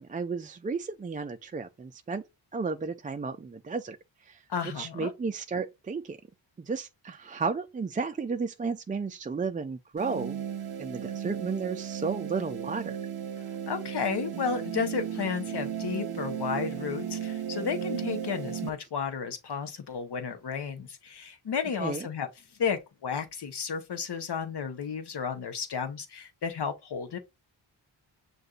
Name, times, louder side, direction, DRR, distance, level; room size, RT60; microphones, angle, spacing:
voice 1, 0.0-2.2 2.5-4.0 4.2-4.4 4.8-6.2 6.7-10.4 10.8-13.0 21.8-22.1, right 4 dB, 20° right, 0.3 m, -33 dB
voice 2, 4.5-5.1 13.7-22.3 22.6-27.2, left 6 dB, 55° left, 1.0 m, -33 dB
sound 1, 10.0-18.7, right 8 dB, 50° right, 0.8 m, -35 dB
6.4 x 2.6 x 2.4 m
cardioid pair, 55°, 48 cm